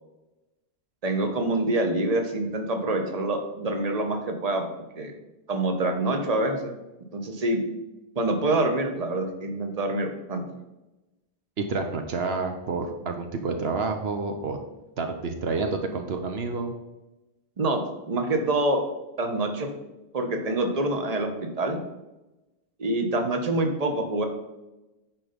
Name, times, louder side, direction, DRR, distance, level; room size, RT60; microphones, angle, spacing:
voice 1, 1.0-4.7 5.0-5.1 5.5-6.7 7.1-7.6 8.2-10.4 17.6-17.8 18.1-18.8 19.2-19.7 20.1-21.8 22.8-24.2, right 2 dB, 40° right, 4 dB, 1.1 m, -26 dB
voice 2, 11.6-14.6 15.0-16.7, right 4 dB, 75° right, 5 dB, 1.1 m, -29 dB
9.8 x 4.4 x 5.2 m, 1.0 s
omnidirectional pair, 1.1 m